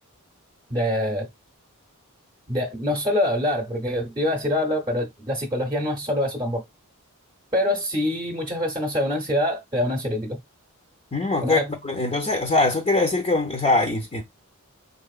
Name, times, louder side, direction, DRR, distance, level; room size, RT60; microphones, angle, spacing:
voice 1, 0.7-1.3 2.5-6.6 7.5-10.4 11.4-11.7, left 1 dB, 20° right, 0.8 m, -25 dB
voice 2, 11.1-14.2, left 2 dB, 30° left, 0.6 m, -22 dB
3.9 x 2.9 x 2.3 m
head